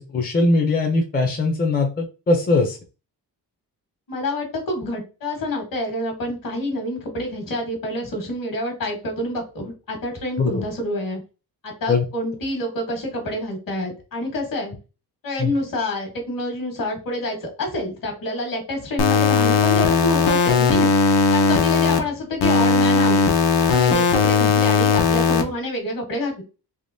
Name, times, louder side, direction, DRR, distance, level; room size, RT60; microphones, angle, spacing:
voice 1, 0.0-2.8 10.4-10.6 11.9-12.0 15.4-15.5, left 3 dB, 25° left, 2 dB, 0.5 m, -20 dB
voice 2, 4.1-11.2 11.6-14.7 15.2-20.9 21.3-23.2 23.6-26.4, left 1 dB, 55° left, 3 dB, 1.4 m, -27 dB
sound 1, 19.0-22.0 22.4-25.4, left 5 dB, 75° left, 0.7 m, -17 dB
3.5 x 2.8 x 2.6 m, 0.32 s
wide cardioid pair, 160°, 40 cm